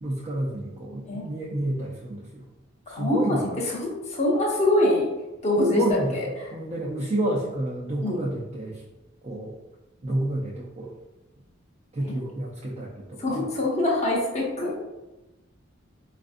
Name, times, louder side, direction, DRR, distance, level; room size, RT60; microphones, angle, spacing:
voice 1, 0.0-2.5 2.9-3.5 5.6-6.1 6.5-8.8 9.2-9.5 10.0-10.9 11.9-13.5, right 1 dB, 30° right, -4 dB, 0.4 m, -29 dB
voice 2, 2.9-3.4 3.8-5.1 5.4-5.8 6.1-6.5 8.0-8.2 12.0-12.2 13.2-14.7, left 1 dB, 35° left, -3 dB, 0.8 m, -24 dB
4.3 x 2.5 x 2.5 m, 1.0 s
head